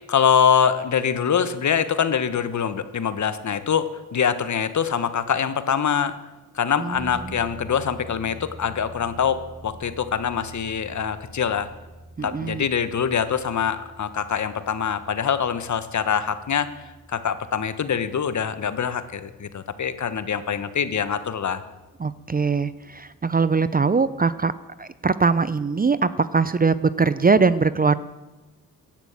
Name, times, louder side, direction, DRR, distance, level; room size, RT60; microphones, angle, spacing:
voice 1, 0.1-6.1 6.5-11.7 12.2-16.7 17.1-21.6, left 7 dB, 50° left, 12 dB, 1.3 m, -24 dB
voice 2, 6.8-7.3 12.2-12.6 22.0-24.5 24.8-28.0, right 4 dB, 25° right, 15 dB, 0.6 m, -21 dB
sound 1, 6.9-23.3, right 1 dB, 50° right, 5.0 m, -47 dB
16.5 x 10.5 x 7.3 m, 1.1 s
cardioid pair, 70°, 37 cm